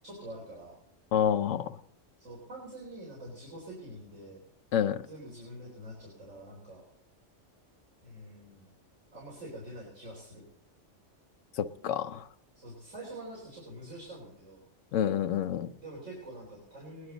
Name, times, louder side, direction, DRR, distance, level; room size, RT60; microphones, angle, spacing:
voice 1, 0.0-0.7 2.2-4.4 5.1-6.8 8.0-8.7 9.1-10.4 12.5-14.6 15.8-17.1, right 1 dB, 85° right, -4 dB, 4.4 m, -45 dB
voice 2, 1.1-1.7 4.7-5.0 11.6-12.2 14.9-15.7, left 9 dB, 85° left, 11 dB, 1.1 m, -28 dB
20.0 x 11.0 x 4.0 m, 0.68 s
omnidirectional pair, 1.3 m